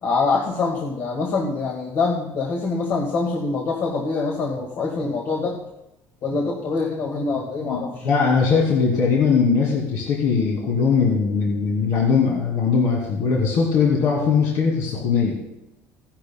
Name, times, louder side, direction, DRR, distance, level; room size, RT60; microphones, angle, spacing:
voice 1, 0.0-5.6 6.2-8.1, left 4 dB, 50° left, -1 dB, 1.7 m, -24 dB
voice 2, 7.7-15.4, left 5 dB, 65° left, -3 dB, 2.3 m, -20 dB
16.5 x 11.5 x 2.2 m, 0.92 s
cardioid pair, 160°, 6 cm